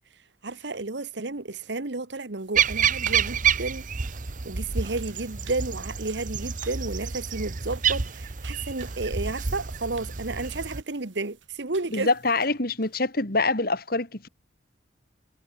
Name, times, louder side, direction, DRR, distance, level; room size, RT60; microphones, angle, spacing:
voice 1, 0.4-3.8 4.4-12.1, right 3 dB, 65° right, 1.3 m, -32 dB
sound 1, 2.4-13.0, right 7 dB, 80° right, 6.5 m, -52 dB
sound 2, 2.6-10.8, right 7 dB, 45° right, 0.9 m, -28 dB
voice 2, 11.9-14.3, left 3 dB, 50° left, 2.8 m, -25 dB
head